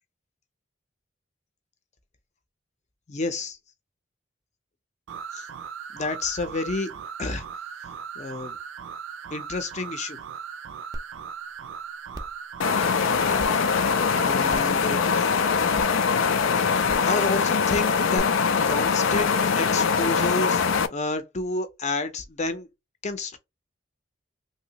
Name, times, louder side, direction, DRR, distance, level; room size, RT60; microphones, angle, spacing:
voice 1, 3.1-3.6 5.3-5.4 5.9-6.9 7.2-7.4 8.2-8.6 9.3-10.2 14.2-15.3 17.0-18.3 18.7-20.6 20.9-22.7 23.0-23.4, left 3 dB, 35° left, 0.6 m, -29 dB
sound 1, 5.1-14.3, right 7 dB, 85° right, 0.4 m, -38 dB
sound 2, 10.9-11.0 11.5-11.6 12.1-12.4 13.4-13.5 14.5-14.8 15.7-15.8 16.9-17.1 18.1-18.2, right 1 dB, 20° right, 0.5 m, -36 dB
sound 3, 12.6-20.9, left 5 dB, 85° left, 0.4 m, -22 dB
3.0 x 2.8 x 2.9 m
head